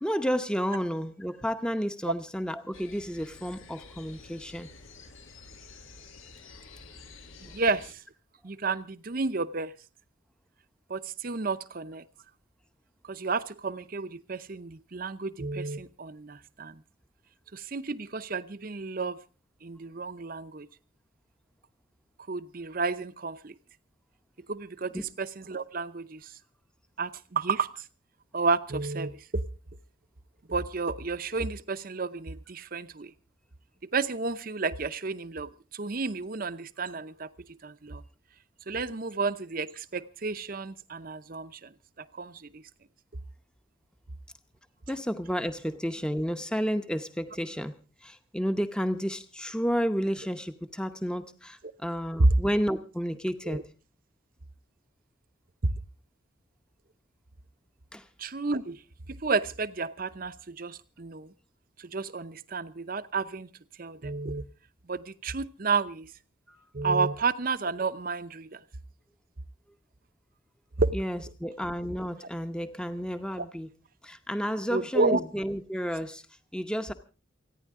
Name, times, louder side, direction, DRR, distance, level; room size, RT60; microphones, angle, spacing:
voice 1, 0.0-4.7 24.9-25.0 44.9-47.7 48.0-53.6 57.9-58.1 66.5-66.6 70.9-73.7 74.0-76.2 76.5-76.9, equal, 5° left, 0.8 m, -31 dB
sound 1, 2.7-7.9, left 4 dB, 90° left, 2.0 m, -50 dB
voice 2, 7.4-8.0 8.4-9.7 10.9-12.0 13.1-16.8 17.5-19.2 19.6-20.7 22.3-23.5 24.5-26.3 27.0-27.8 28.3-29.4 30.5-33.1 33.9-37.3 37.6-38.0 38.7-41.7 42.2-42.6 52.2-52.3 53.4-53.6 58.2-58.8 59.1-61.3 61.8-63.5 63.8-64.4 64.9-66.1 66.7-68.6 70.8-70.9 73.4-73.5 74.7-75.2, right 3 dB, 45° right, 0.7 m, -31 dB
29.0 x 10.0 x 3.7 m
head